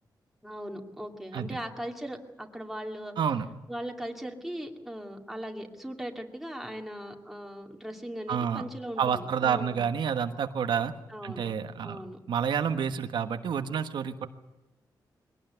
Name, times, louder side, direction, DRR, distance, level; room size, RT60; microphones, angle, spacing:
voice 1, 0.4-3.1 3.7-9.8 11.1-11.5 11.8-12.2, equal, 5° right, 2 dB, 2.4 m, -39 dB
voice 2, 3.2-3.5 8.3-8.6 9.0-10.9 11.2-12.0 12.3-14.3, right 7 dB, 90° right, 7 dB, 1.3 m, -29 dB
23.0 x 18.0 x 9.3 m, 1.0 s
wide cardioid pair, 165°, 8 cm